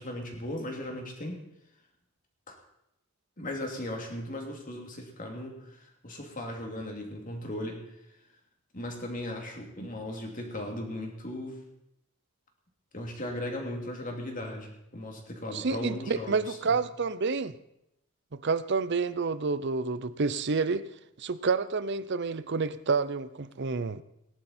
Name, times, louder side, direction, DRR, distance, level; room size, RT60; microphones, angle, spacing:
voice 1, 0.0-1.4 2.5-2.6 3.4-7.9 8.7-11.6 12.9-16.8, left 1 dB, 40° left, 1 dB, 2.6 m, -37 dB
voice 2, 15.5-17.6 18.3-20.8 21.2-24.0, right 4 dB, 55° right, 15 dB, 0.6 m, -29 dB
18.0 x 11.0 x 4.4 m, 0.82 s
head